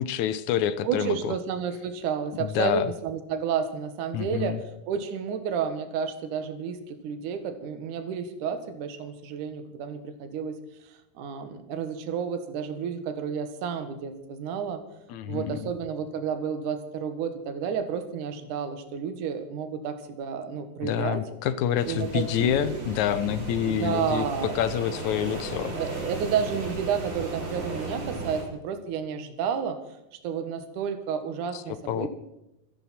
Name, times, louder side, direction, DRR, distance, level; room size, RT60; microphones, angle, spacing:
voice 1, 0.0-1.3 2.4-2.9 4.1-4.6 15.1-15.7 20.8-24.3 24.6-25.7 31.5-32.1, left 10 dB, 75° left, 13 dB, 1.8 m, -27 dB
voice 2, 0.8-4.6 4.9-10.6 10.9-14.8 15.3-21.2 21.9-22.9 23.2-23.3 23.6-24.6 25.8-29.8 30.2-32.1, right 7 dB, 65° right, 8 dB, 2.8 m, -31 dB
sound 1, 21.7-28.4, right 2 dB, 30° right, 3.9 m, -35 dB
26.5 x 11.0 x 4.3 m, 0.94 s
omnidirectional pair, 4.1 m